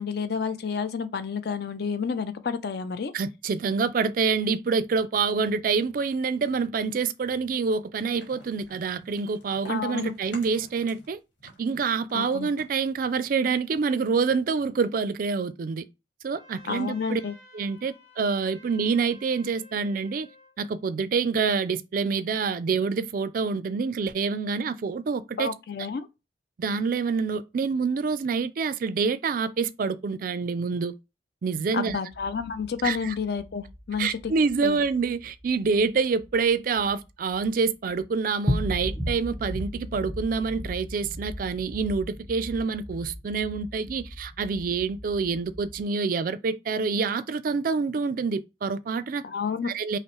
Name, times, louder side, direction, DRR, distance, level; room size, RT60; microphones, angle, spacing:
voice 1, 0.0-3.1 9.7-10.1 12.1-12.5 16.7-17.4 25.4-26.1 31.7-34.3 34.6-34.8 49.2-49.7, left 5 dB, 60° left, 0.4 m, -30 dB
voice 2, 3.1-11.2 11.6-15.8 16.2-17.2 17.5-20.3 20.6-25.5 26.6-31.0 31.4-32.0 32.8-33.1 34.0-49.2 49.6-50.0, right 5 dB, 50° right, 0.3 m, -27 dB
sound 1, 8.2-11.1 11.4-13.8, left 1 dB, 75° left, 1.4 m, -50 dB
Trumpet, 16.3-20.6, left 1 dB, 35° left, 1.5 m, -52 dB
sound 2, 32.1-37.5 37.9-38.1 38.4-45.8, equal, 5° left, 0.7 m, -36 dB
5.3 x 2.0 x 3.0 m
head